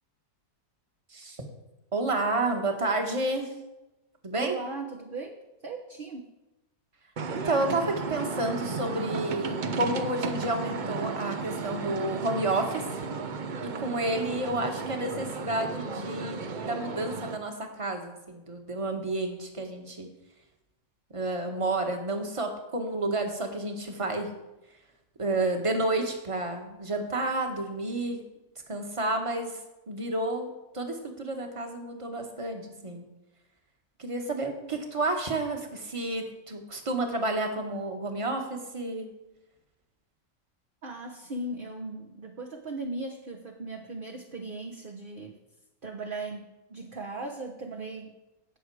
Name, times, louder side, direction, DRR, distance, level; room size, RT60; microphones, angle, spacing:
voice 1, 1.1-1.4 1.9-3.5 4.2-4.6 7.4-13.0 13.6-20.1 21.1-24.3 25.2-28.2 28.7-29.6 29.9-33.0 34.0-39.1, right 2 dB, 20° right, 3 dB, 1.3 m, -30 dB
voice 2, 4.3-6.3 40.8-45.4 45.8-48.2, right 2 dB, 40° right, 2 dB, 0.9 m, -38 dB
sound 1, 7.2-17.4, right 4 dB, 70° right, 0.4 m, -34 dB
17.0 x 6.4 x 4.7 m, 1.0 s
omnidirectional pair, 1.9 m